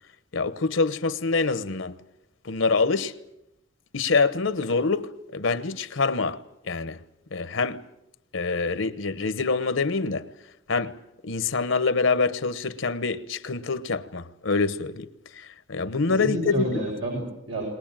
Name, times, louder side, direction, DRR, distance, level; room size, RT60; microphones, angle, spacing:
voice 1, 0.3-2.0 2.4-3.1 3.9-7.0 7.3-7.8 8.3-10.3 10.7-11.0 11.2-15.1 15.3-16.7, left 4 dB, 70° left, 1.0 m, -25 dB
voice 2, 15.8-17.6, right 1 dB, 80° right, 5.9 m, -30 dB
21.5 x 19.5 x 9.0 m
head